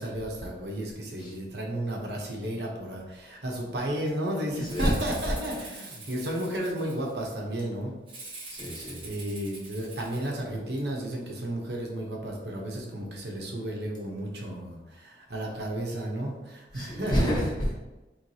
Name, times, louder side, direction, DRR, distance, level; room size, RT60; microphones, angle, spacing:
voice 1, 0.0-7.9 8.8-17.3, right 1 dB, 70° right, -1 dB, 0.9 m, -33 dB
voice 2, 4.6-5.0 8.5-9.0 16.7-17.8, equal, 25° left, -5 dB, 1.2 m, -28 dB
Rattle (instrument), 4.6-7.3 8.1-10.3, right 2 dB, 30° right, 1.1 m, -44 dB
4.8 x 3.4 x 2.8 m, 1.1 s
head